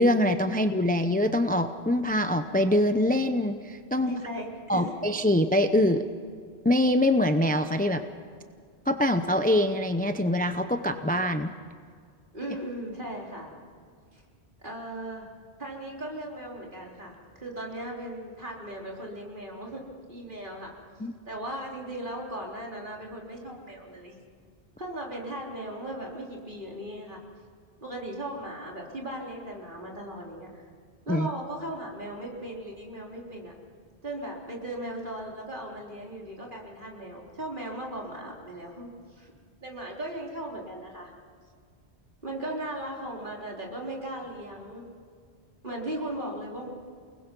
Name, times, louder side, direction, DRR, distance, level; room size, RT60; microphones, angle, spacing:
voice 1, 0.0-4.1 4.7-6.0 6.6-8.0 8.9-11.5 21.0-21.1 31.1-31.3, left 1 dB, 10° left, 8 dB, 0.7 m, -24 dB
voice 2, 4.0-4.9 12.3-13.5 14.1-14.2 14.6-15.3 15.6-19.8 20.1-20.7 21.3-24.2 24.8-27.2 27.8-30.5 31.1-33.5 34.0-38.9 39.2-39.3 39.6-41.1 42.2-44.8 45.6-46.7, right 1 dB, 50° right, -2 dB, 4.0 m, -37 dB
29.5 x 20.5 x 5.4 m, 2.1 s
omnidirectional pair, 1.1 m